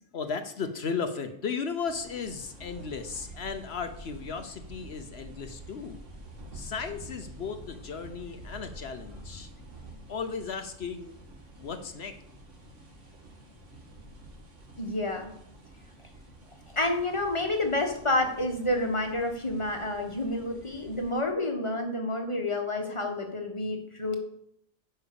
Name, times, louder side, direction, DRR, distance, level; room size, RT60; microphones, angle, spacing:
voice 1, 0.1-6.0 6.5-9.5 10.1-11.2 11.6-12.2, left 5 dB, 60° left, 8 dB, 1.0 m, -35 dB
sound 1, 1.9-21.1, right 1 dB, 80° right, 2.2 m, -48 dB
voice 2, 14.8-15.3 16.7-24.1, left 2 dB, 25° left, 3 dB, 1.6 m, -29 dB
10.0 x 5.6 x 6.9 m, 0.71 s
omnidirectional pair, 1.2 m